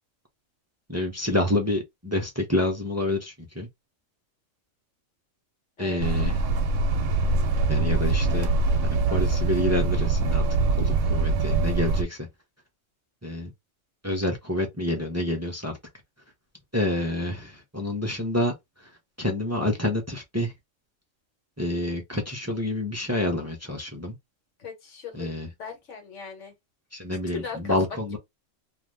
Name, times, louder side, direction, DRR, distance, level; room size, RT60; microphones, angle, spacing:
voice 1, 0.9-3.7 5.8-6.4 7.7-8.5 8.8-10.5 10.8-12.2 13.2-13.5 14.0-15.7 16.7-18.5 19.2-20.5 21.6-24.1 25.1-25.5 26.9-28.2, left 1 dB, 20° right, 0.4 m, -28 dB
sound 1, 6.0-12.0, right 3 dB, 75° right, 1.0 m, -23 dB
voice 2, 24.6-25.3 25.6-26.5 27.3-28.2, left 5 dB, 65° left, 1.3 m, -38 dB
2.6 x 2.4 x 3.2 m
omnidirectional pair, 1.4 m